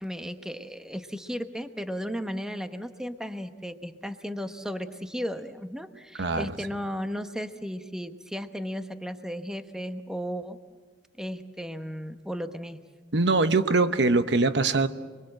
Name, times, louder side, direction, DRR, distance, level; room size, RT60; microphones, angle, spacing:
voice 1, 0.0-10.6 11.2-12.8, equal, 5° right, 8 dB, 1.0 m, -35 dB
voice 2, 13.1-14.9, right 3 dB, 75° right, 10 dB, 1.0 m, -22 dB
29.0 x 22.0 x 7.8 m, 1.4 s
head